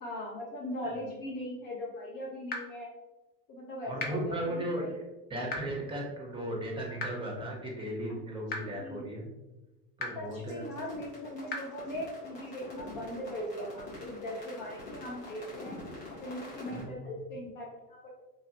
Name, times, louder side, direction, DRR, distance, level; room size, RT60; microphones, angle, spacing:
voice 1, 0.0-2.9 3.5-4.9 8.6-9.1 10.1-15.8 16.2-18.1, left 1 dB, 45° left, -3 dB, 0.8 m, -39 dB
sound 1, 2.5-2.6 4.0-4.1 5.5-5.6 7.0-7.1 8.5-8.6 10.0-10.1 11.5-11.6, left 3 dB, 20° left, 0.4 m, -33 dB
voice 2, 3.9-5.0 5.3-9.3 10.0-10.6 16.7-17.1, right 1 dB, 10° right, -1 dB, 0.8 m, -36 dB
sound 2, 10.3-16.8, left 2 dB, 85° left, 1.5 m, -45 dB
3.1 x 2.4 x 2.8 m, 1.1 s
hypercardioid pair, 85°, 48 cm